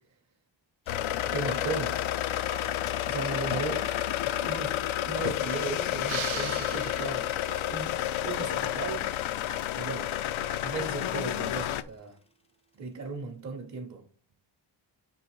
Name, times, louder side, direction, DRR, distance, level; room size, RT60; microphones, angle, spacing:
sound 1, 0.9-11.8, left 12 dB, 80° left, 0.5 m, -30 dB
sound 2, 0.9-1.0 1.1-12.3, right 2 dB, 15° left, 0.3 m, -51 dB
voice 1, 1.2-2.0 3.1-3.8 4.4-4.8 5.0-7.3 7.7-8.0 8.2-9.1 9.7-10.1 10.6-12.2 12.7-14.0, right 4 dB, 35° right, 0.8 m, -36 dB
sound 3, 6.1-7.6, right 12 dB, 80° right, 0.7 m, -38 dB
6.2 x 3.3 x 4.7 m
wide cardioid pair, 175°, 47 cm